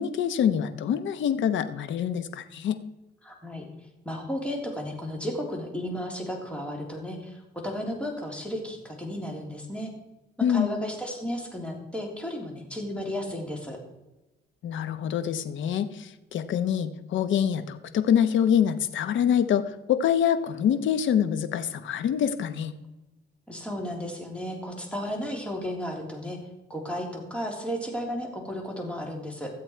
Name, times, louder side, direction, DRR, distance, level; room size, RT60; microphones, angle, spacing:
voice 1, 0.0-2.8 10.4-10.7 14.6-22.7, left 9 dB, 75° left, 11 dB, 1.0 m, -25 dB
voice 2, 3.2-3.6 4.0-7.4 7.6-9.9 10.5-13.8 23.5-26.4 26.7-29.5, equal, 5° left, 0 dB, 3.3 m, -33 dB
14.5 x 7.9 x 4.5 m, 1.0 s
cardioid pair, 90°, 20 cm